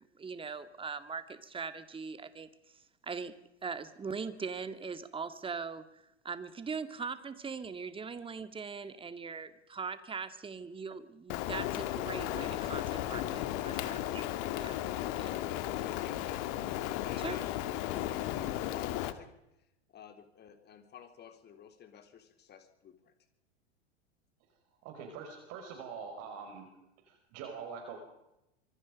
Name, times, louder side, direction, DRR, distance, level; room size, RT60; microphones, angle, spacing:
voice 1, 0.2-2.5 3.1-14.2 14.6-14.8 15.2-15.3 17.2-17.4, right 5 dB, 15° right, 12 dB, 2.1 m, -41 dB
Rain, 11.3-19.1, left 13 dB, 50° left, 2.2 m, -35 dB
voice 2, 15.5-17.4 17.9-19.3 19.9-23.1, left 9 dB, 30° left, 7 dB, 3.8 m, -52 dB
voice 3, 24.8-26.7 27.0-28.0, right 6 dB, 50° right, 3 dB, 5.6 m, -44 dB
26.0 x 24.5 x 5.3 m, 0.89 s
hypercardioid pair, 100°, 33 cm